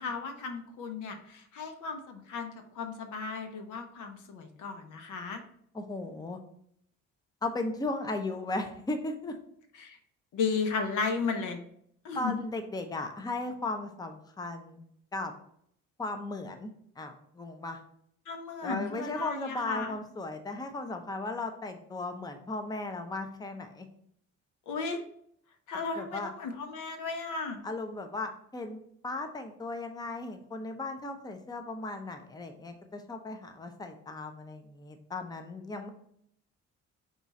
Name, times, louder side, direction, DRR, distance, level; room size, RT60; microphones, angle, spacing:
voice 1, 0.0-5.4 9.8-10.0 10.3-11.6 12.0-12.3 18.3-19.9 24.7-25.0 25.7-27.6, left 5 dB, 80° left, 6 dB, 0.8 m, -35 dB
voice 2, 5.7-6.4 7.4-9.3 12.2-14.8 15.1-15.3 16.0-17.8 18.6-23.9 26.0-26.3 27.6-35.9, left 2 dB, 15° left, 6 dB, 0.6 m, -36 dB
5.3 x 2.4 x 4.0 m, 0.68 s
cardioid pair, 90°, 30 cm